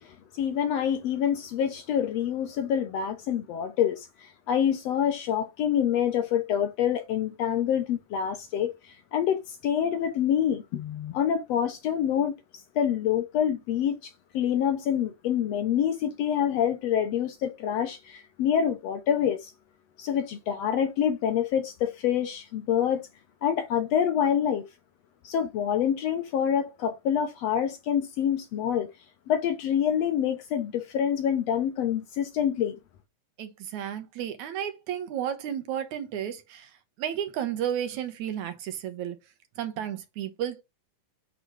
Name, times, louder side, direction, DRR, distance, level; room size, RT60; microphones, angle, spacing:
voice 1, 0.0-19.5 20.0-23.1 23.4-24.7 25.2-28.9 29.3-32.8, left 9 dB, 70° left, 1.7 m, -27 dB
voice 2, 33.4-36.7 37.0-39.2 39.6-40.6, right 10 dB, 75° right, 2.3 m, -32 dB
8.3 x 3.7 x 6.3 m
omnidirectional pair, 3.6 m